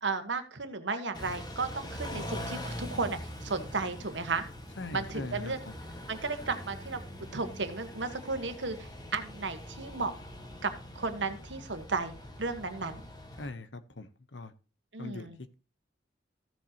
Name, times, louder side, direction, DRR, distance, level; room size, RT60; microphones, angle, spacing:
voice 1, 0.0-4.4 4.9-5.6 6.1-7.0 7.3-10.1 10.6-13.0 14.9-15.4, right 4 dB, 80° right, 8 dB, 1.5 m, -34 dB
Car / Idling / Accelerating revving vroom, 1.1-13.5, left 1 dB, 20° left, 1.7 m, -43 dB
voice 2, 4.8-5.7 13.4-14.5 15.0-15.3, left 2 dB, 90° left, 12 dB, 1.0 m, -41 dB
15.0 x 7.3 x 3.0 m, 0.33 s
head